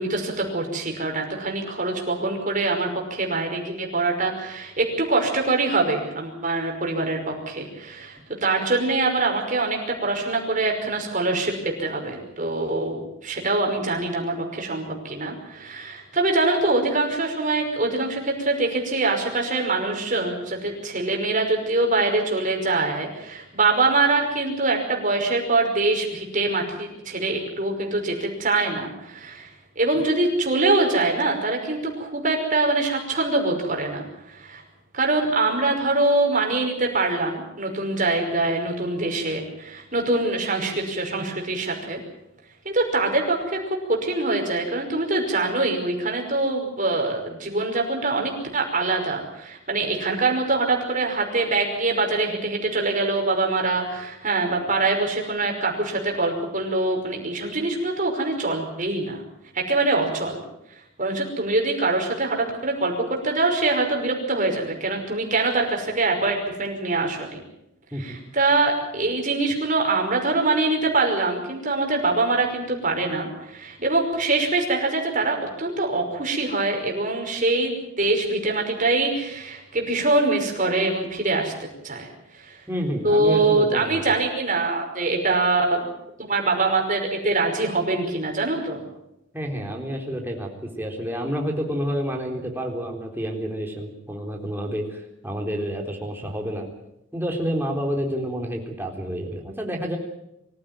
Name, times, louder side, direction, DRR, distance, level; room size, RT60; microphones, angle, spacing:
voice 1, 0.0-29.5 29.8-34.6 34.9-42.0 42.7-59.2 59.5-60.4 61.0-67.4 68.0-81.5 81.8-82.1 82.3-82.6 83.0-85.9 86.2-88.8, right 2 dB, 40° right, 2 dB, 5.6 m, -24 dB
voice 2, 82.7-84.2 89.3-90.5 90.8-96.7 97.1-100.0, equal, 10° right, 1 dB, 3.9 m, -29 dB
24.5 x 15.5 x 9.2 m, 0.84 s
head